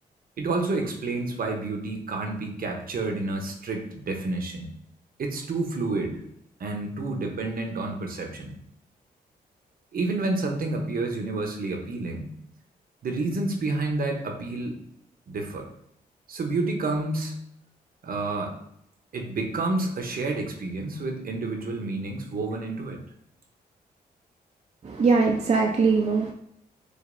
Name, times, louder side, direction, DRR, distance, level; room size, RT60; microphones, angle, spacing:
voice 1, 0.4-4.7 5.2-6.2 6.6-8.6 9.9-12.3 13.0-14.8 15.3-15.7 16.3-17.4 18.0-18.5 19.1-23.0, right 2 dB, 60° right, 3 dB, 0.9 m, -29 dB
voice 2, 24.8-26.3, right 4 dB, 40° right, 2 dB, 0.5 m, -21 dB
5.0 x 2.6 x 2.6 m, 0.74 s
supercardioid pair, 55°, 17 cm